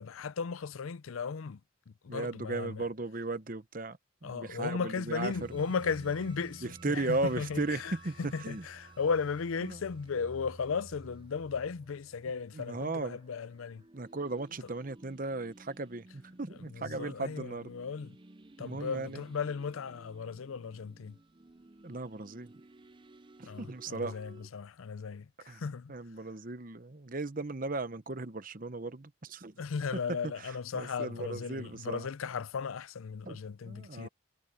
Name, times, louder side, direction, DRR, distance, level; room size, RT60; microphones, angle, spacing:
voice 1, 0.0-1.6 1.9-2.9 4.2-13.8 14.6-14.7 16.6-18.2 18.6-21.2 23.5-25.9 29.6-34.1, left 5 dB, 80° left, 0.5 m, -36 dB
voice 2, 2.1-5.3 6.8-8.6 9.6-9.8 12.6-13.2 13.9-17.7 18.6-19.2 21.8-22.5 23.4-24.2 25.5-25.6 25.9-29.5 30.7-32.1 33.3-33.4 33.7-34.1, right 2 dB, 40° right, 0.9 m, -36 dB
sound 1, 5.2-24.5, right 2 dB, 25° right, 0.5 m, -54 dB
head